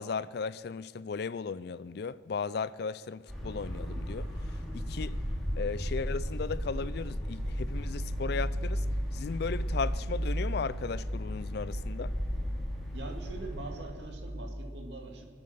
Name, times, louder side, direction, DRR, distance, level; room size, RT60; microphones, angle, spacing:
voice 1, 0.0-4.3 4.7-5.2 5.6-8.8 9.1-12.1, left 5 dB, 55° left, 0.4 m, -36 dB
sound 1, 3.3-13.9, equal, ahead, 3.2 m, -34 dB
voice 2, 12.9-15.2, right 2 dB, 65° right, 2.2 m, -43 dB
25.0 x 8.6 x 6.6 m
head